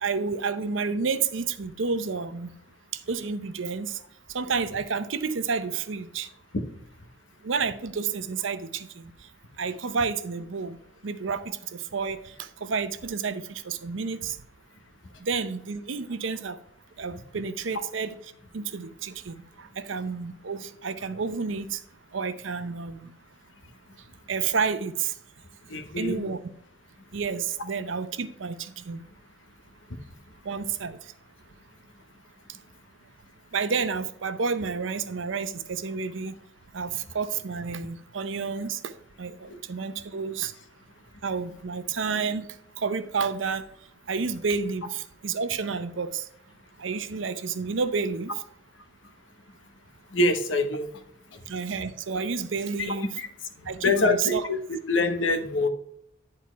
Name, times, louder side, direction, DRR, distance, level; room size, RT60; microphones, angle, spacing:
voice 1, 0.0-2.5 2.9-4.0 4.3-6.3 7.4-9.1 9.6-10.8 11.0-14.4 15.2-16.6 17.0-18.1 18.5-21.8 22.1-23.1 24.3-25.1 26.0-26.4 27.1-29.0 30.4-31.0 33.5-36.4 36.7-38.9 39.2-40.5 41.2-42.5 42.8-43.6 44.1-46.3 46.8-48.3 51.5-53.2 53.7-54.5, right 5 dB, 80° right, 0.6 m, -30 dB
voice 2, 25.7-26.2 50.1-50.9 53.2-53.3 53.8-55.7, left 2 dB, 80° left, 1.1 m, -25 dB
10.5 x 4.4 x 4.5 m
head